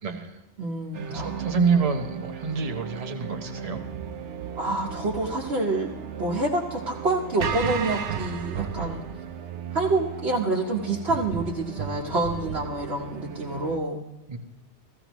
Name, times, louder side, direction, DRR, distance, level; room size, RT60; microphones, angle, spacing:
voice 1, 0.0-0.4 1.1-3.8 14.3-14.4, right 5 dB, 35° right, 5 dB, 1.0 m, -27 dB
voice 2, 0.6-1.4 4.6-9.0 9.7-14.0, right 2 dB, 65° right, -3 dB, 1.3 m, -27 dB
sound 1, 0.9-13.8, right 7 dB, 85° right, 1.1 m, -35 dB
15.5 x 14.5 x 3.0 m, 0.96 s
omnidirectional pair, 1.2 m